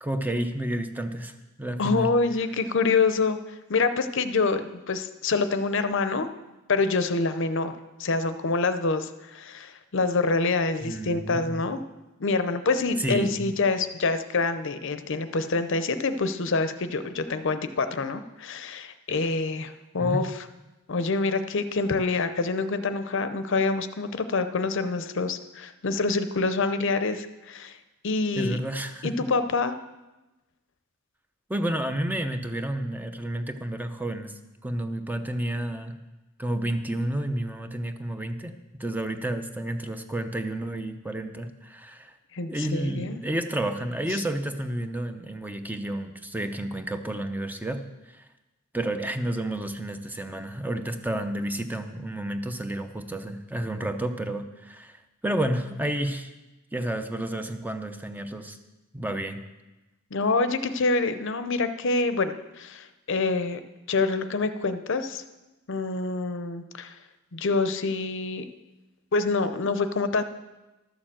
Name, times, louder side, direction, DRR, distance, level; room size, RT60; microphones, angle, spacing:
voice 1, 0.0-2.1 10.8-11.6 13.0-13.5 20.0-20.3 28.4-29.1 31.5-36.0 36.4-42.1 42.5-48.2 48.7-56.3 56.7-58.6 58.9-59.4, right 1 dB, 10° right, 7 dB, 0.7 m, -31 dB
voice 2, 1.8-6.3 6.7-7.7 8.0-11.8 12.2-20.3 20.9-27.8 28.0-28.6 29.0-29.7 42.3-43.2 44.1-44.2 60.1-63.6 63.9-65.2 65.7-67.0 67.3-68.4 69.1-70.2, left 3 dB, 60° left, 10 dB, 0.7 m, -26 dB
12.5 x 6.8 x 7.4 m, 1.1 s
head